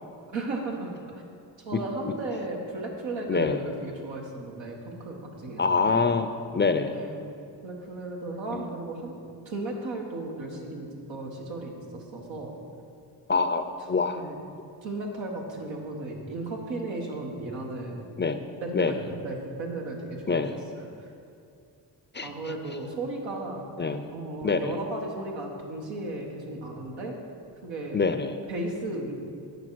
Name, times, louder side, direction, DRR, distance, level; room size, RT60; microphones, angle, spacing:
voice 1, 0.3-1.2 1.6-6.1 6.9-7.2 7.6-9.1 9.5-12.6 14.1-14.4 14.8-18.1 18.6-20.4 20.7-21.1 22.2-23.7 24.1-27.1 27.6-28.0 28.5-29.2, right 2 dB, 90° right, 0 dB, 1.1 m, -35 dB
voice 2, 3.3-3.6 5.6-7.0 8.5-8.7 13.3-14.2 18.2-18.4 18.7-18.9 20.3-20.5 22.1-22.3 23.8-24.1 24.4-24.7 27.9-28.3, left 4 dB, 25° left, 9 dB, 0.4 m, -25 dB
8.2 x 5.2 x 4.5 m, 2.4 s
cardioid pair, 45°, 44 cm